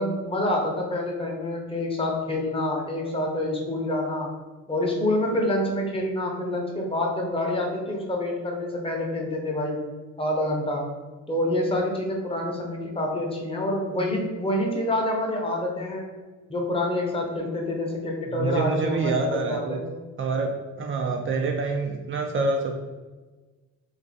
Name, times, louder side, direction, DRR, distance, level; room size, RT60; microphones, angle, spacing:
voice 1, 0.0-4.3 4.7-9.9 10.2-10.9 11.3-16.1 16.5-19.8, left 1 dB, 20° left, 0 dB, 0.7 m, -27 dB
voice 2, 18.3-19.8 20.2-22.8, right 3 dB, 45° right, 3 dB, 0.4 m, -26 dB
2.5 x 2.5 x 3.9 m, 1.3 s
cardioid pair, 90°, 30 cm